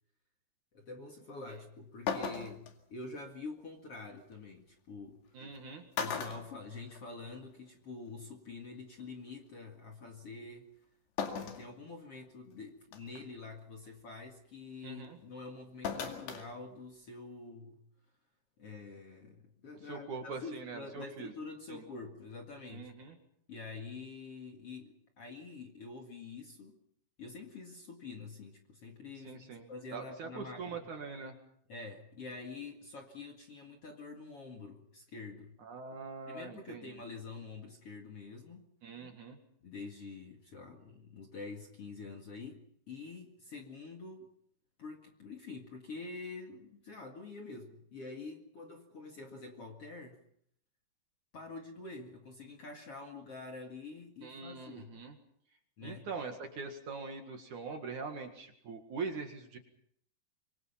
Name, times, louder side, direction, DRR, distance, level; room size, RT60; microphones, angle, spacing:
voice 1, 0.7-5.4 6.0-10.8 11.4-17.8 18.6-22.9 23.5-26.8 27.2-30.9 31.7-35.6 36.3-38.7 39.6-44.3 44.8-50.2 51.3-55.0 55.8-56.1, left 3 dB, 45° left, 4 dB, 2.3 m, -47 dB
sound 1, 1.5-1.6 2.1-2.7 4.3-4.4 5.4-5.6 5.9-7.3 7.7-7.8 9.0-9.1 11.2-11.7 12.2-12.3 12.9-13.2 15.8-16.5 16.8-16.9, left 6 dB, 70° left, 4.3 m, -37 dB
voice 2, 5.3-5.8 14.8-15.2 19.8-21.3 21.7-21.8 22.7-23.2 29.2-31.4 35.6-36.8 38.8-39.4 54.2-55.2 55.8-59.6, right 4 dB, 55° right, 4 dB, 2.8 m, -43 dB
26.0 x 24.5 x 5.7 m, 0.70 s
omnidirectional pair, 5.0 m